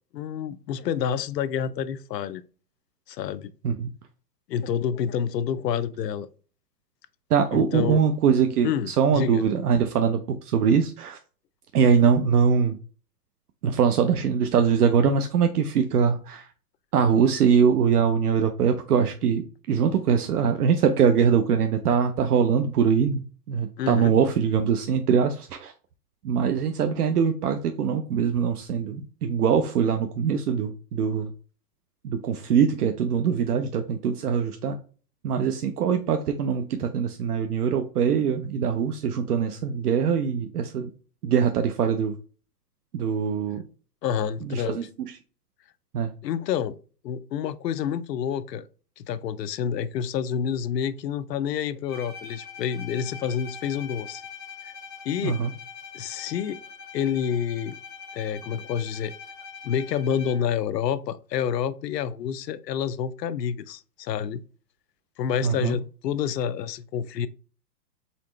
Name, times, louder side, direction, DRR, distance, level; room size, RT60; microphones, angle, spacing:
voice 1, 0.1-2.4 3.1-3.5 4.5-6.3 7.5-8.0 8.6-9.4 23.8-24.1 44.0-44.8 46.2-46.8 47.0-48.7 49.0-54.2 54.6-54.7 55.0-55.4 55.9-56.6 56.9-57.8 58.1-59.1 59.6-64.4 65.2-67.3, left 8 dB, 80° left, 0.6 m, -28 dB
voice 2, 7.3-11.2 11.7-12.8 13.6-16.5 16.9-25.7 26.2-31.3 32.0-34.8 35.2-40.9 41.2-42.2 42.9-43.6 44.4-44.8 45.9-46.1 55.2-55.5 65.4-65.8, right 7 dB, 65° right, 0.6 m, -22 dB
Bowed string instrument, 51.9-60.6, left 6 dB, ahead, 0.6 m, -43 dB
4.2 x 3.8 x 3.1 m
hypercardioid pair, 175°, 49 cm